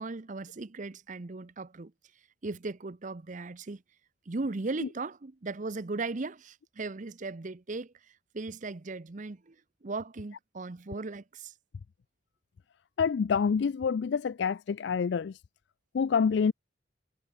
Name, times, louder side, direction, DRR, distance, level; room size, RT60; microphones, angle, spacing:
voice 1, 0.0-1.9 2.4-3.8 4.3-7.9 8.3-9.6 9.8-11.5, right 3 dB, 40° right, 0.7 m, -37 dB
voice 2, 13.0-15.4 15.9-16.5, left 6 dB, 60° left, 0.4 m, -27 dB
head